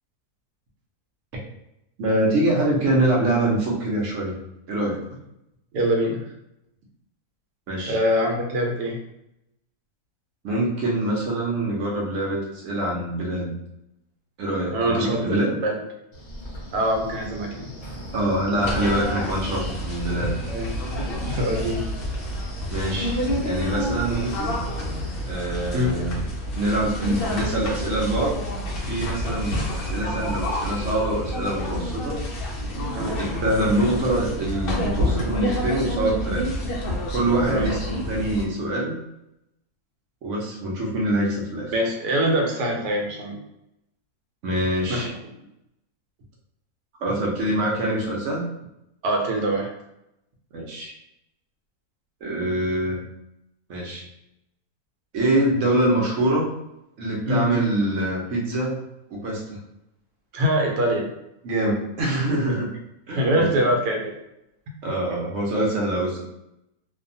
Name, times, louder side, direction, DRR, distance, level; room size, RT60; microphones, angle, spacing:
voice 1, 2.0-4.3 4.7-5.0 7.7-8.0 10.4-13.5 14.4-15.6 18.1-20.3 22.7-24.6 25.2-26.2 26.5-28.4 28.9-32.2 33.2-36.5 37.1-37.8 38.1-39.0 40.2-41.7 44.4-45.1 47.0-48.4 50.5-50.9 52.2-53.0 53.7-54.0 55.1-56.5 57.0-58.8 59.1-59.6 61.4-62.7 63.1-63.7 64.8-66.2, right 1 dB, 60° right, -3 dB, 0.9 m, -24 dB
voice 2, 5.7-6.3 7.9-9.0 14.7-15.8 16.7-17.7 20.5-20.8 21.3-21.8 25.7-25.9 32.9-33.2 37.4-37.7 41.7-43.4 44.9-45.1 49.0-49.7 57.2-57.5 60.3-61.1 63.2-64.1, equal, 85° right, 1 dB, 1.2 m, -24 dB
Wind, 16.1-25.3, equal, 40° left, 0.7 m, -40 dB
sound 1, 18.6-38.5, equal, 80° left, 0.5 m, -28 dB
2.6 x 2.2 x 2.6 m, 0.84 s
omnidirectional pair, 1.7 m